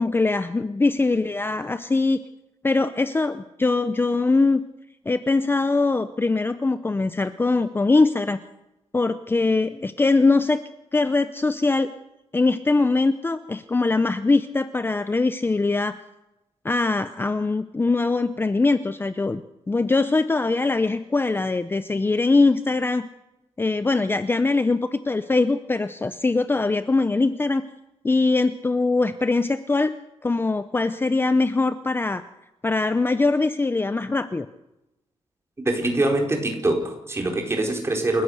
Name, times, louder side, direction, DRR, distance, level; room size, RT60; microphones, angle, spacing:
voice 1, 0.0-2.2 2.6-4.6 5.1-8.4 8.9-10.6 10.9-11.9 12.3-16.0 16.6-19.4 19.7-23.1 23.6-27.6 28.0-29.9 30.2-32.2 32.6-34.5, left 3 dB, 20° left, 11 dB, 0.7 m, -22 dB
voice 2, 35.6-38.2, right 2 dB, 25° right, 2 dB, 4.5 m, -23 dB
28.5 x 15.0 x 6.6 m, 0.94 s
wide cardioid pair, 150°, 11 cm